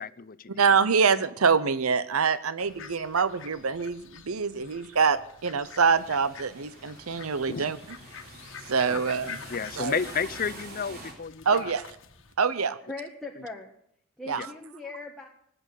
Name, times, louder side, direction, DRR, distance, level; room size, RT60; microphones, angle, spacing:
voice 1, 0.0-0.6 4.6-4.7 7.5-7.7 9.5-11.7 14.4-14.5, left 6 dB, 45° left, 16 dB, 0.6 m, -32 dB
voice 2, 0.6-7.8 8.7-9.4 9.8-10.0 11.4-11.9 12.4-12.8 14.3-14.5, right 5 dB, 90° right, 14 dB, 0.8 m, -25 dB
sound 1, 2.6-12.3, left 6 dB, 65° left, 1.5 m, -47 dB
sound 2, 5.9-11.1, right 2 dB, 50° right, 4.2 m, -46 dB
voice 3, 12.9-13.7 14.2-15.3, left 3 dB, ahead, -2 dB, 1.4 m, -39 dB
19.0 x 8.9 x 8.2 m, 0.71 s
head